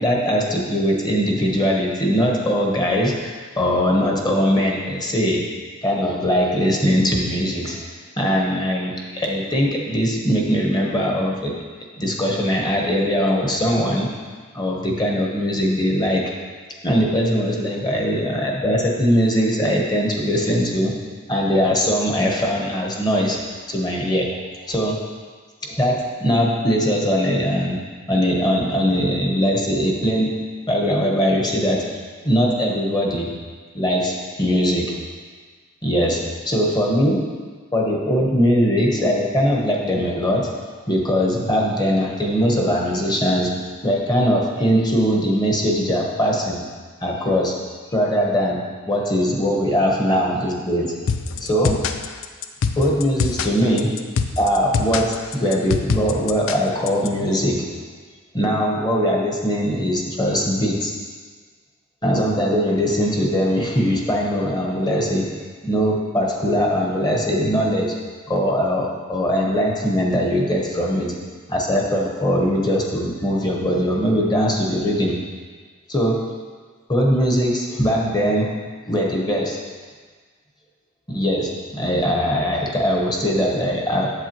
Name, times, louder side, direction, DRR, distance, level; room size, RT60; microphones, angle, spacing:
voice 1, 0.0-5.4 5.8-7.8 8.2-11.6 12.0-14.1 14.5-16.2 16.8-20.9 21.3-23.4 23.7-24.3 24.7-25.0 25.6-27.8 28.1-30.3 30.7-32.0 32.2-33.3 33.7-34.9 35.8-37.2 37.7-40.5 40.9-43.5 43.8-46.6 47.0-47.5 47.9-48.6 48.9-50.9 51.4-51.8 52.8-54.0 54.4-57.7 58.3-60.9 62.0-65.3 65.6-67.9 68.3-71.1 71.5-75.2 75.9-76.2 76.9-78.5 78.9-79.6 81.1-84.1, equal, 20° left, -1 dB, 1.0 m, -21 dB
sound 1, 51.1-57.1, left 5 dB, 65° left, 0.4 m, -25 dB
8.0 x 7.7 x 3.0 m, 1.5 s
head